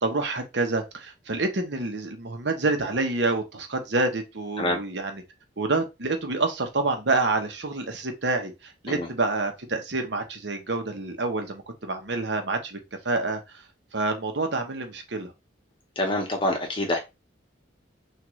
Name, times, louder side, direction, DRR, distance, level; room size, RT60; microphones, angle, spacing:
voice 1, 0.0-5.2 5.6-12.8 13.0-13.4 13.9-15.3, right 3 dB, 65° right, 1.0 m, -27 dB
voice 2, 16.0-17.0, left 1 dB, 25° left, 1.1 m, -26 dB
6.1 x 2.6 x 3.1 m
head